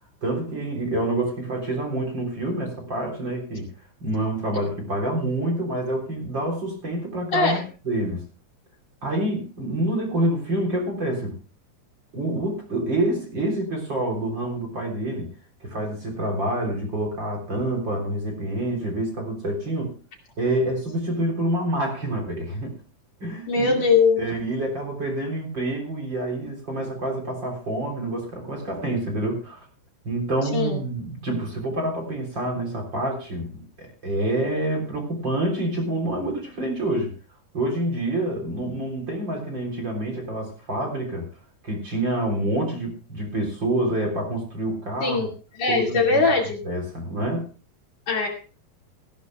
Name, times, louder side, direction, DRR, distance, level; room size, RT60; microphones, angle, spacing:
voice 1, 0.2-3.7 4.0-8.2 9.0-11.3 12.1-15.3 15.6-20.0 20.4-22.8 23.2-23.9 24.2-29.6 30.0-37.1 37.5-41.3 41.6-45.3 45.7-46.2 46.6-47.5, right 1 dB, 30° right, 1 dB, 4.1 m, -27 dB
voice 2, 7.3-7.6 23.5-24.3 30.5-30.8 45.0-45.3 45.5-46.6 48.1-48.3, left 4 dB, 50° left, 0 dB, 3.4 m, -21 dB
19.0 x 15.5 x 2.3 m, 0.36 s
omnidirectional pair, 4.0 m